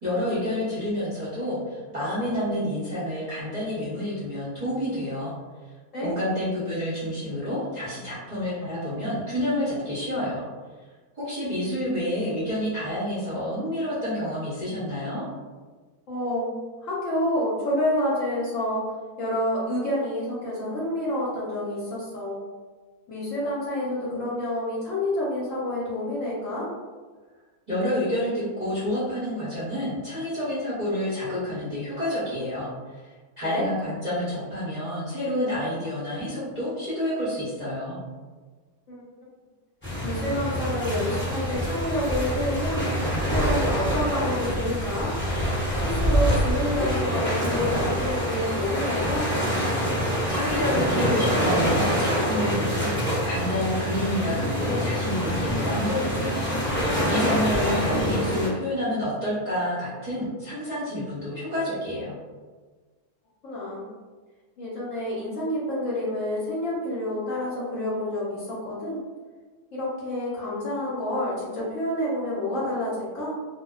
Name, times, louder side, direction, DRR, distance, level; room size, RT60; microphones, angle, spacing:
voice 1, 0.0-5.3 6.0-10.4 11.1-15.2 27.7-38.0 50.3-62.1, left 1 dB, 40° right, -11 dB, 0.7 m, -29 dB
voice 2, 16.1-18.8 19.2-22.4 23.1-26.7 33.4-33.7 38.9-39.0 40.0-42.8 43.3-45.1 45.8-49.3 57.1-57.4 63.4-63.9 64.6-69.0 69.7-73.4, left 1 dB, 65° left, -7 dB, 0.8 m, -28 dB
sound 1, 39.8-58.5, equal, 20° left, 0.3 m, -26 dB
2.5 x 2.1 x 2.3 m, 1.4 s
omnidirectional pair, 1.7 m